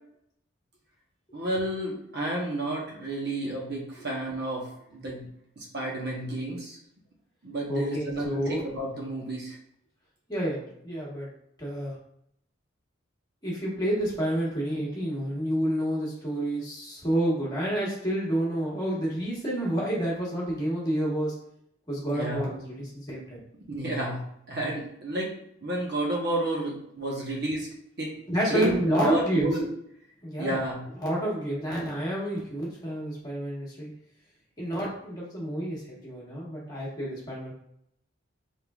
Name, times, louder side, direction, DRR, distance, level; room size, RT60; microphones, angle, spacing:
voice 1, 1.3-5.3 5.6-6.8 7.4-9.6 22.1-22.5 23.7-25.3 25.6-27.7 28.0-28.1 28.4-29.7 30.4-30.8, right 1 dB, 55° right, -3 dB, 1.0 m, -31 dB
voice 2, 7.7-8.6 10.3-11.3 11.6-11.9 13.4-21.3 21.9-23.4 28.3-29.5 30.2-30.6 31.0-33.9 34.6-37.5, right 1 dB, 20° left, -6 dB, 1.3 m, -29 dB
4.4 x 3.6 x 2.4 m, 0.72 s
head